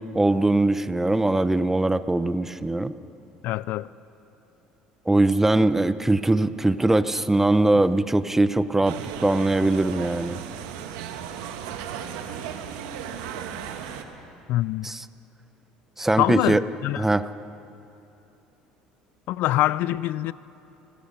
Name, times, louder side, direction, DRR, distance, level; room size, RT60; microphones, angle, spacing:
voice 1, 0.1-2.9 5.1-10.4 14.8-15.0 16.0-16.6 17.0-17.3, right 2 dB, 10° right, 0.8 m, -21 dB
voice 2, 3.4-3.9 14.5-14.9 16.2-17.1 19.3-20.3, left 15 dB, 65° left, 0.4 m, -24 dB
sound 1, 8.8-14.0, right 8 dB, 80° right, 1.5 m, -35 dB
29.0 x 15.5 x 6.7 m
supercardioid pair, 80°, 3 cm